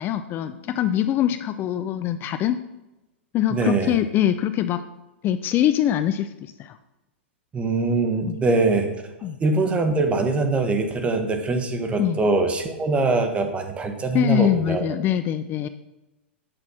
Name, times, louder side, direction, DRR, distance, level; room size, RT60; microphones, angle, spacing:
voice 1, 0.0-2.6 3.3-4.8 5.2-6.8 8.3-8.4 9.2-9.4 12.0-12.2 14.1-15.7, left 11 dB, 30° left, 11 dB, 0.4 m, -23 dB
voice 2, 3.5-4.0 7.5-8.9 9.4-14.9, right 3 dB, 20° right, 6 dB, 1.3 m, -23 dB
8.9 x 6.1 x 5.6 m, 1.0 s
hypercardioid pair, 110°, 6 cm